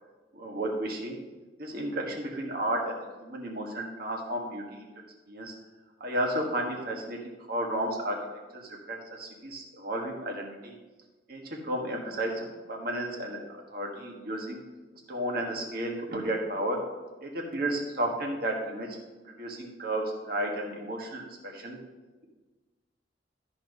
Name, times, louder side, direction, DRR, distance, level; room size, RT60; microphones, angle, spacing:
voice 1, 0.3-1.2 1.6-4.9 5.3-5.5 6.0-8.2 8.5-10.8 11.3-13.4 13.7-14.6 15.1-16.8 17.2-19.0 19.4-21.8, right 1 dB, 55° right, 0 dB, 1.6 m, -33 dB
13.0 x 4.3 x 5.3 m, 1.2 s
head